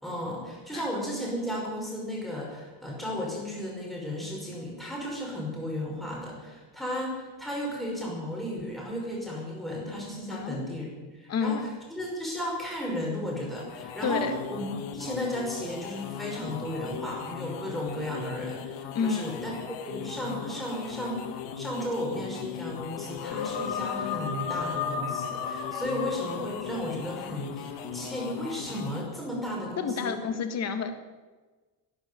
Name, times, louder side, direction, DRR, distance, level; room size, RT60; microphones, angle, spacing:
voice 1, 0.0-10.9 11.1-19.5 19.8-30.2, equal, ahead, -4 dB, 5.4 m, -34 dB
voice 2, 10.3-10.8 11.3-11.7 14.0-14.4 18.9-19.3 29.8-30.9, left 6 dB, 40° left, 8 dB, 1.7 m, -29 dB
sound 1, 13.4-29.2, left 8 dB, 85° left, 1.9 m, -39 dB
sound 2, 23.1-27.2, left 6 dB, 55° left, 1.9 m, -34 dB
12.5 x 10.5 x 9.5 m, 1.3 s
cardioid pair, 155°, 42 cm